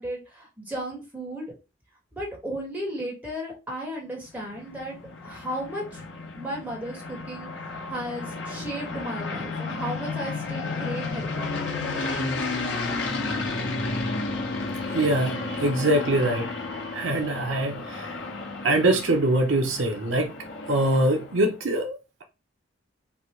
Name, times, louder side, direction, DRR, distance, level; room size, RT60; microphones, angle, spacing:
voice 1, 0.0-1.5 2.1-5.0 5.2-6.0 6.4-7.5 7.9-11.7, right 1 dB, 10° right, -3 dB, 1.5 m, -34 dB
sound 1, 4.3-21.5, left 3 dB, 60° left, 1.1 m, -32 dB
voice 2, 14.8-16.5 16.9-20.3 20.7-22.0, right 1 dB, 75° right, 4 dB, 0.7 m, -24 dB
3.3 x 2.5 x 4.4 m, 0.29 s
head